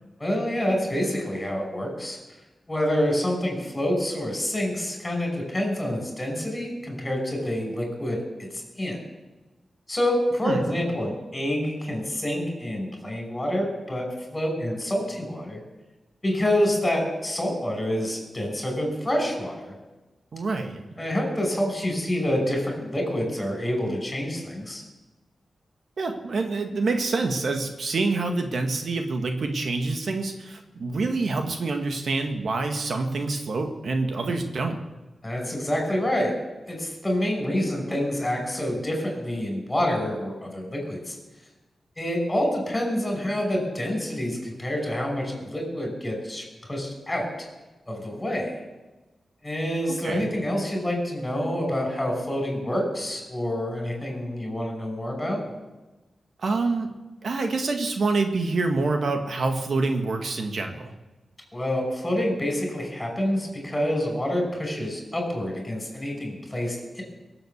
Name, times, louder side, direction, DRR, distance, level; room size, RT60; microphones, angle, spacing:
voice 1, 0.2-2.2 2.7-8.5 8.8-9.0 9.9-15.6 16.2-19.7 21.0-24.8 34.2-34.4 35.2-36.3 36.7-41.2 42.0-46.4 46.7-47.3 47.9-48.6 49.4-55.4 61.5-67.0, left 1 dB, 20° left, 2 dB, 5.6 m, -27 dB
voice 2, 20.3-20.8 26.0-34.8 50.0-50.3 56.4-56.9 57.2-60.9, right 3 dB, 65° right, 5 dB, 1.6 m, -26 dB
23.0 x 7.9 x 7.1 m, 1.1 s
wide cardioid pair, 100°, 0 cm